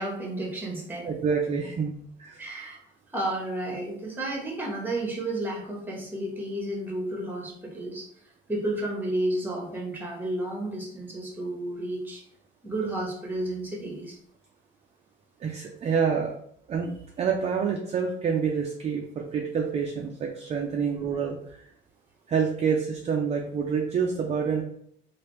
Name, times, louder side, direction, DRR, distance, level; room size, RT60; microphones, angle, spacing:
voice 1, 0.0-1.1 2.4-2.8 3.1-8.1 8.5-12.2 12.6-14.2, right 1 dB, 10° right, -1 dB, 0.9 m, -32 dB
voice 2, 1.0-2.4 15.4-16.3 16.7-21.7 22.3-24.6, right 6 dB, 35° right, 1 dB, 0.4 m, -27 dB
3.2 x 2.5 x 3.0 m, 0.67 s
cardioid pair, 135°, 20 cm